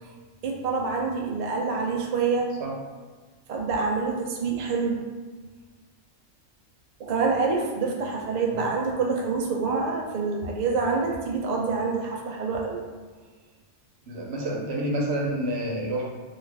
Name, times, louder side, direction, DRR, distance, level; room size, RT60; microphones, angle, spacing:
voice 1, 0.4-2.5 3.5-5.0 7.0-12.8, right 4 dB, 80° right, -1 dB, 0.3 m, -26 dB
voice 2, 14.1-16.0, right 1 dB, 60° right, -2 dB, 0.9 m, -28 dB
3.1 x 2.4 x 3.3 m, 1.4 s
omnidirectional pair, 1.4 m